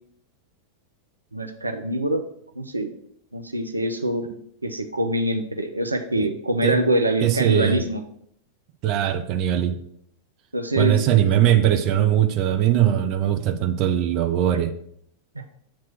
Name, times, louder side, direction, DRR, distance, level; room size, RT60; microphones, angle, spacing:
voice 1, 1.3-2.2 2.6-2.9 3.3-4.3 4.6-8.0 10.5-11.3 15.4-15.5, right 1 dB, 85° right, 6 dB, 0.5 m, -24 dB
voice 2, 7.2-7.8 8.8-9.8 10.8-14.7, right 11 dB, 40° right, 6 dB, 0.7 m, -20 dB
7.5 x 3.0 x 6.0 m, 0.69 s
figure-of-eight pair, 90°, 0 cm